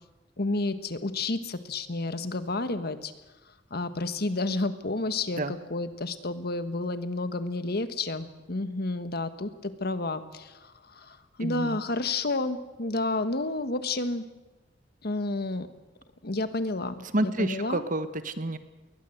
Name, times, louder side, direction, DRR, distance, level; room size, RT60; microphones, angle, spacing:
voice 1, 0.4-3.1 3.7-14.3 15.0-15.7 16.2-17.8, left 2 dB, 60° left, 10 dB, 1.5 m, -30 dB
voice 2, 11.4-11.8 17.1-18.6, right 1 dB, 45° right, 11 dB, 1.4 m, -29 dB
21.5 x 20.0 x 8.0 m, 1.1 s
head